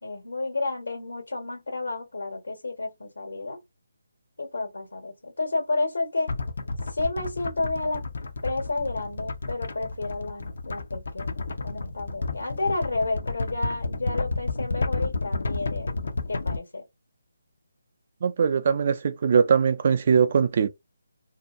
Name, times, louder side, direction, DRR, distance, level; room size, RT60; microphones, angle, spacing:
voice 1, 0.0-3.6 4.4-6.3 6.9-8.0 8.4-15.9 16.3-16.8, left 3 dB, 80° left, 1.3 m, -31 dB
sound 1, 6.3-16.6, left 3 dB, 65° left, 0.6 m, -31 dB
voice 2, 18.2-20.7, right 6 dB, 45° right, 0.4 m, -21 dB
2.6 x 2.2 x 2.5 m
figure-of-eight pair, 155°, 0 cm